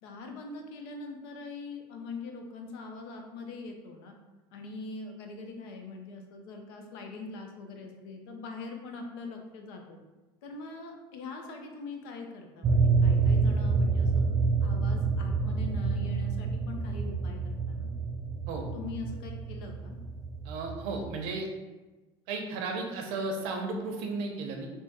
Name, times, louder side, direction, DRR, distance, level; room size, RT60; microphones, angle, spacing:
voice 1, 0.0-4.1 4.5-10.0 10.4-14.3 14.6-17.4 17.7-17.9 18.7-20.0, left 3 dB, 85° left, 3 dB, 0.6 m, -42 dB
sound 1, 12.6-21.1, right 4 dB, 30° right, 0.4 m, -28 dB
voice 2, 20.4-21.5 22.3-24.7, right 3 dB, 80° right, 2 dB, 0.7 m, -34 dB
3.5 x 2.1 x 4.1 m, 1.2 s
supercardioid pair, 115°, 12 cm